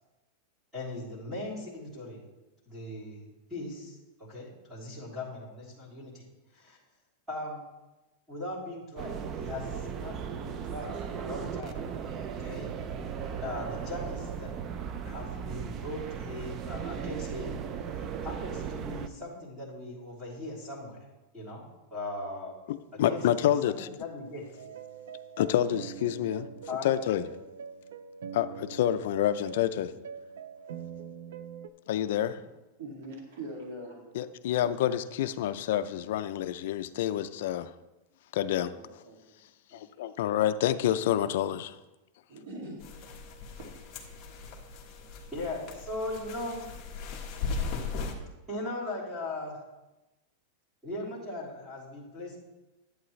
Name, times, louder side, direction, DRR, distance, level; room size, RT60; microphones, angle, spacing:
voice 1, 0.7-2.2 2.7-6.2 6.5-6.8 7.3-7.6 8.3-9.7 9.9-11.8 12.4-12.7 13.4-14.5 15.0-17.6 17.9-21.0 21.3-21.6 21.9-22.5 22.9-24.5 26.7-26.9 45.3-46.6 48.5-49.6 50.8-52.4, left 1 dB, 10° right, -9 dB, 3.2 m, -39 dB
sound 1, 9.0-19.1, right 7 dB, 25° right, 0.4 m, -37 dB
voice 2, 22.7-23.9 25.4-26.5 26.8-27.2 28.3-29.9 31.9-32.4 34.2-37.7 38.3-38.7 39.7-41.7, left 11 dB, 60° left, 11 dB, 0.4 m, -28 dB
sound 2, 24.6-31.7, right 7 dB, 85° right, 0.5 m, -43 dB
voice 3, 32.8-34.2 38.7-39.4 39.7-39.8 41.2-41.3 42.3-42.9, right 1 dB, 70° right, 0 dB, 2.2 m, -43 dB
sound 3, 42.8-48.1, left 4 dB, 25° left, 1.4 m, -38 dB
11.0 x 8.5 x 3.2 m, 1.0 s
supercardioid pair, 170°, 0 cm